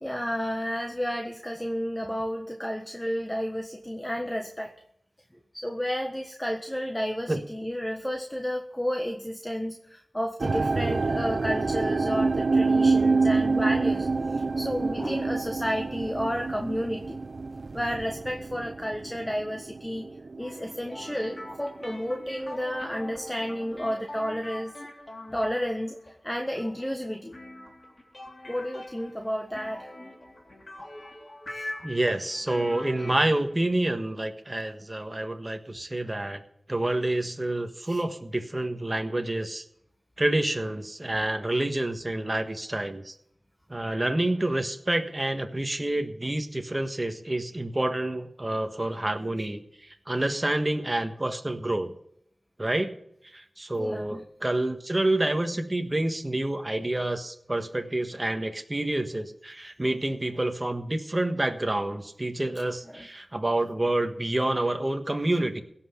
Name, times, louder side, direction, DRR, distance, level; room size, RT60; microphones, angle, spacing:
voice 1, 0.0-4.7 5.5-17.2 17.7-20.1 20.4-24.7 25.3-26.0 26.2-27.3 28.5-29.9 31.5-31.7 37.8-38.0 53.8-54.2 62.9-63.1, equal, 10° left, 3 dB, 1.4 m, -31 dB
sound 1, 10.4-21.6 21.8-22.5 23.0-23.1, right 3 dB, 65° right, 0.5 m, -27 dB
sound 2, 20.4-33.9, left 1 dB, 40° left, 3.4 m, -44 dB
voice 2, 31.8-36.4 36.7-39.6 40.2-43.1 43.7-51.9 52.6-52.9 53.3-65.6, right 1 dB, 25° right, 6 dB, 1.5 m, -28 dB
16.5 x 5.9 x 8.4 m, 0.72 s
wide cardioid pair, 55°, 0 cm